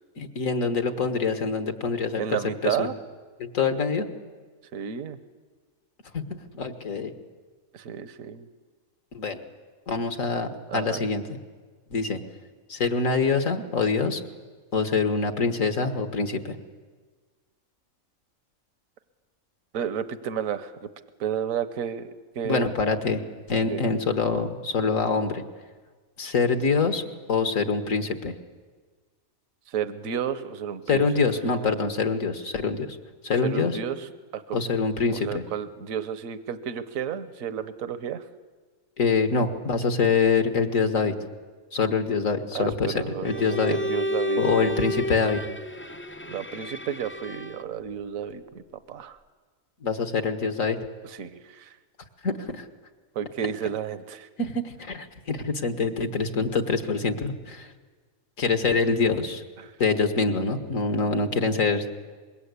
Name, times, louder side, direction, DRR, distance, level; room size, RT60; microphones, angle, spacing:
voice 1, 0.2-2.9 3.4-4.1 6.1-6.3 6.5-7.1 9.1-9.4 9.9-11.2 11.9-12.2 12.7-14.2 14.7-16.6 22.4-23.2 23.5-25.4 26.2-27.0 27.3-28.3 30.9-33.0 33.2-33.8 34.5-35.4 39.0-41.1 41.7-43.8 44.4-45.4 49.8-50.8 52.2-52.7 54.4-57.7 58.4-59.4 59.8-62.0, left 4 dB, 65° left, 7 dB, 2.0 m, -25 dB
voice 2, 2.2-2.9 4.7-5.2 7.7-8.5 10.7-11.1 19.7-20.7 21.2-22.7 23.7-23.8 29.7-31.1 33.4-34.1 34.3-34.6 35.1-38.2 42.5-44.8 46.3-48.6 48.9-49.2 51.2-51.7 53.1-54.3 58.7-58.8 59.6-59.7, right 8 dB, 70° right, 11 dB, 1.4 m, -32 dB
Bowed string instrument, 43.2-47.8, equal, 15° left, 0.4 m, -32 dB
25.0 x 22.0 x 8.3 m, 1.4 s
omnidirectional pair, 1.5 m